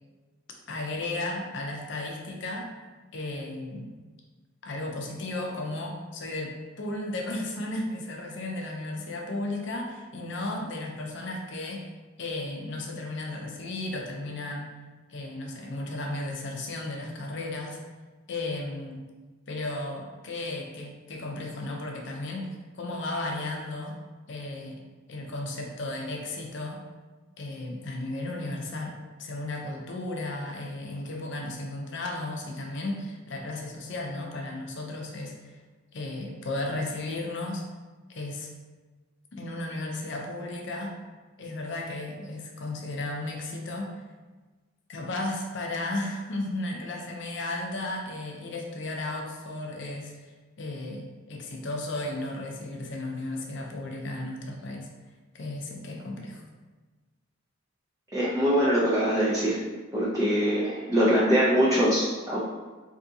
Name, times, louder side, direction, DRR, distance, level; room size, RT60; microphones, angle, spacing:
voice 1, 0.7-2.7 3.1-3.9 4.6-11.9 12.2-14.8 15.1-17.8 18.3-19.1 19.5-24.0 24.3-24.8 25.1-26.8 27.4-35.6 35.9-37.6 38.1-38.5 39.3-41.0 41.4-44.0 44.9-50.1 50.6-54.9 55.3-56.4, left 2 dB, 60° left, 1 dB, 0.5 m, -34 dB
voice 2, 58.1-59.6 59.9-62.4, equal, 15° right, -8 dB, 0.4 m, -23 dB
3.5 x 2.7 x 2.7 m, 1.3 s
head